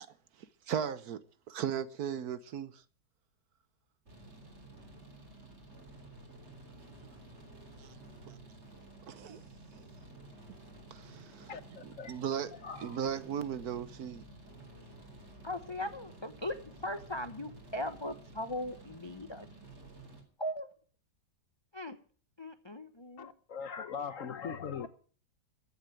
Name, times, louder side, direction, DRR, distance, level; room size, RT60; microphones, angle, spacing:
voice 1, 0.7-1.2 1.5-2.8 7.8-7.9 8.3-8.4 9.1-9.4 10.9-11.5 11.9-12.5 12.8-14.2, right 8 dB, 65° right, 1.3 m, -36 dB
sound 1, 4.1-20.2, right 2 dB, 40° right, 4.1 m, -52 dB
voice 2, 11.5-12.1 12.6-13.0 23.2-24.9, left 6 dB, 55° left, 1.2 m, -41 dB
voice 3, 15.4-19.5 20.4-20.7 21.7-22.0 22.4-23.3 24.8-24.9, left 1 dB, 30° left, 0.5 m, -39 dB
14.5 x 8.1 x 9.1 m
omnidirectional pair, 1.9 m